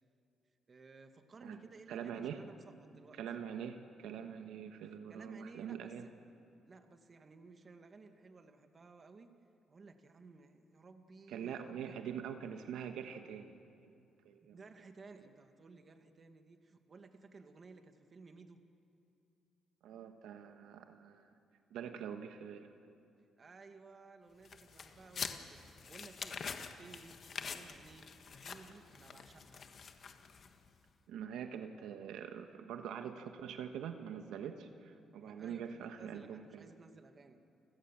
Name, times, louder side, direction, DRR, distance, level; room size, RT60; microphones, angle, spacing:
voice 1, 0.7-3.2 5.1-5.9 6.7-9.4 9.7-12.0 14.5-18.7 23.4-29.6 35.2-37.4, right 4 dB, 40° right, 7 dB, 1.9 m, -57 dB
voice 2, 1.9-2.4 3.2-6.1 11.3-13.5 13.8-14.0 14.2-14.6 19.8-21.3 21.7-22.7 31.1-36.7, right 8 dB, 85° right, 7 dB, 1.2 m, -44 dB
sound 1, 24.4-30.7, left 6 dB, 50° left, 1.5 m, -46 dB
29.5 x 16.5 x 7.3 m, 2.6 s
cardioid pair, 90°, 0 cm